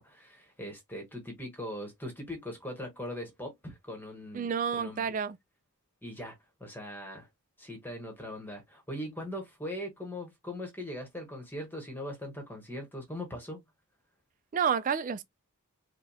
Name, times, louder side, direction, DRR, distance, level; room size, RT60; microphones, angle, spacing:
voice 1, 0.0-4.5 4.8-5.1 6.0-7.3 7.6-13.6, left 1 dB, 10° left, 1.1 m, -40 dB
voice 2, 4.3-5.4 14.5-15.2, right 7 dB, 35° right, 0.3 m, -29 dB
5.0 x 2.3 x 2.8 m
head